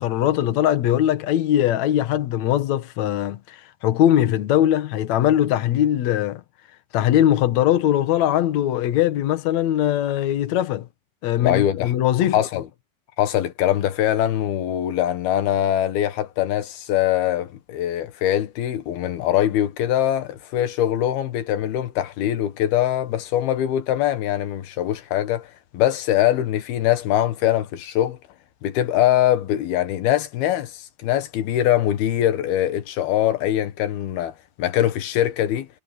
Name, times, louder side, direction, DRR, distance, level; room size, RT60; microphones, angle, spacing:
voice 1, 0.0-6.4 6.9-10.9 11.2-12.4, left 12 dB, 60° left, 2.2 m, -21 dB
voice 2, 11.4-11.9 12.3-12.7 13.2-28.2 28.6-35.7, left 12 dB, 75° left, 3.2 m, -22 dB
omnidirectional pair, 4.6 m